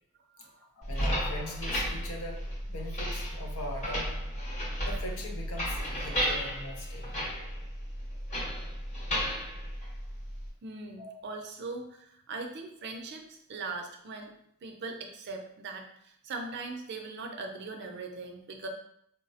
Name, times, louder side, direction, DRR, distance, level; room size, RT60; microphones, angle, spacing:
voice 1, 0.7-4.2 4.8-7.1 11.0-11.2, left 1 dB, 75° left, 1 dB, 0.6 m, -41 dB
sound 1, 0.8-10.5, equal, 35° left, 0.9 m, -34 dB
voice 2, 10.6-14.3 14.6-18.7, right 3 dB, 50° right, 3 dB, 0.4 m, -40 dB
4.1 x 2.0 x 2.7 m, 0.71 s
head